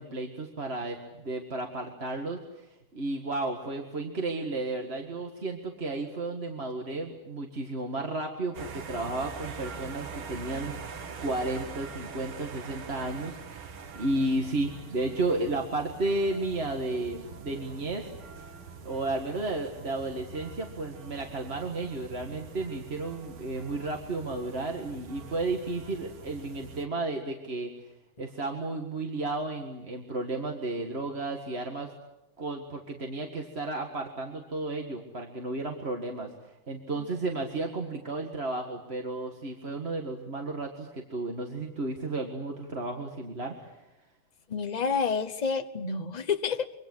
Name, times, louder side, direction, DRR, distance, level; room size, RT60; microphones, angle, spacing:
voice 1, 0.0-10.8 11.2-18.1 18.8-27.9 28.2-31.9 32.4-43.7, right 2 dB, 30° right, 2 dB, 2.0 m, -33 dB
sound 1, 8.5-26.9, right 5 dB, 70° right, 2.4 m, -44 dB
voice 2, 44.5-46.8, left 5 dB, 45° left, 9 dB, 0.5 m, -29 dB
26.0 x 24.5 x 8.0 m, 0.91 s
omnidirectional pair, 2.4 m